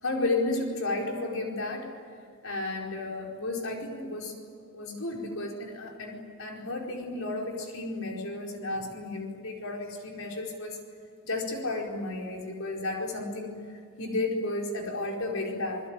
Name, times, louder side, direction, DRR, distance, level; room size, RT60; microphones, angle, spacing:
voice 1, 0.0-1.9 2.4-4.3 4.7-10.8 11.2-13.6 14.0-15.8, left 2 dB, 70° left, 1 dB, 4.6 m, -32 dB
27.5 x 21.5 x 9.1 m, 2.2 s
head